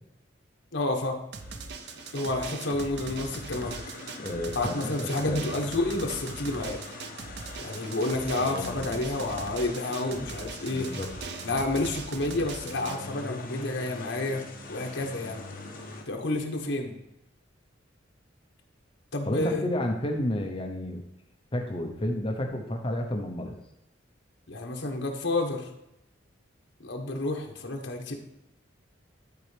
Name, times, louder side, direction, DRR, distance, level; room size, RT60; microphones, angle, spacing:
voice 1, 0.7-1.2 2.1-3.9 4.5-6.8 7.6-10.9 11.4-14.4 14.7-15.4 16.1-16.9 19.1-19.7 24.5-25.7 26.8-28.1, left 2 dB, 70° left, 2 dB, 1.2 m, -30 dB
Drum, 1.3-13.0, right 4 dB, 60° right, 0.6 m, -40 dB
sound 1, 1.4-16.0, left 2 dB, 45° left, 1.1 m, -43 dB
voice 2, 4.2-5.6 8.4-8.9 10.7-11.1 19.3-21.0 21.5-23.6, left 1 dB, 30° left, 3 dB, 0.7 m, -31 dB
12.0 x 4.3 x 3.4 m, 0.84 s
head